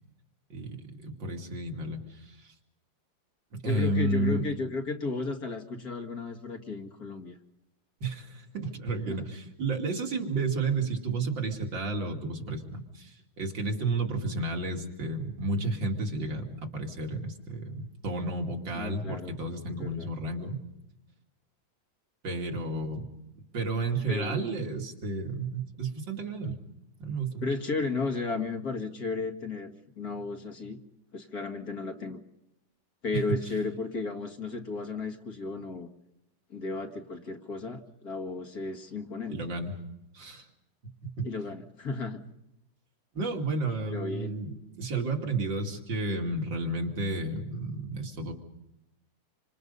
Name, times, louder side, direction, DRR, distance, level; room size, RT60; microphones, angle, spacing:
voice 1, 0.5-2.0 2.4-2.5 3.5-4.4 8.0-20.6 22.2-23.1 23.4-26.6 27.0-27.4 33.1-33.4 39.3-39.7 40.1-40.4 41.0-41.3 43.1-48.3, right 2 dB, 75° right, 1 dB, 3.2 m, -32 dB
voice 2, 3.6-7.4 9.1-9.2 18.7-19.3 19.7-20.1 24.1-24.4 27.4-30.8 31.1-32.2 33.0-35.9 36.5-39.4 41.2-42.2 43.9-44.3, left 3 dB, 50° left, 3 dB, 2.5 m, -34 dB
27.0 x 26.0 x 5.5 m, 0.84 s
omnidirectional pair, 2.1 m